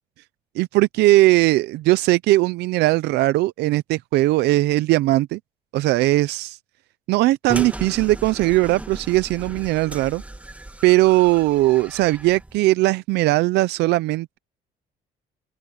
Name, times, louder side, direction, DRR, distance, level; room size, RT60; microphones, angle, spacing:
voice 1, 0.6-5.4 5.7-6.6 7.1-10.2 10.8-14.4, right 18 dB, 80° right, 0.6 m, -19 dB
sound 1, 7.5-12.6, right 1 dB, 10° right, 1.4 m, -36 dB
open air
cardioid pair, 110°, 17 cm